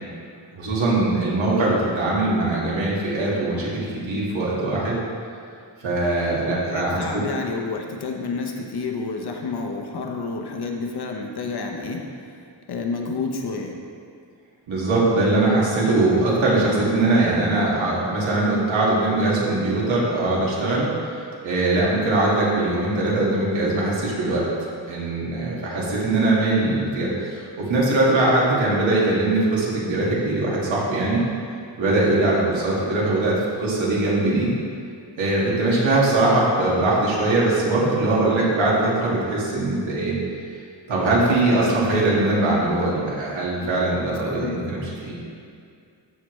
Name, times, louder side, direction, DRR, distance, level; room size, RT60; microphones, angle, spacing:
voice 1, 0.5-5.0 5.8-7.2 14.7-24.5 24.9-31.2 31.8-34.5 35.2-40.2 40.9-45.1, right 2 dB, 90° right, -6 dB, 2.2 m, -21 dB
voice 2, 6.6-12.0 12.7-13.8 41.3-41.6 44.2-44.6, left 4 dB, 55° left, 2 dB, 0.9 m, -29 dB
14.0 x 5.0 x 3.2 m, 2.3 s
wide cardioid pair, 160°, 45 cm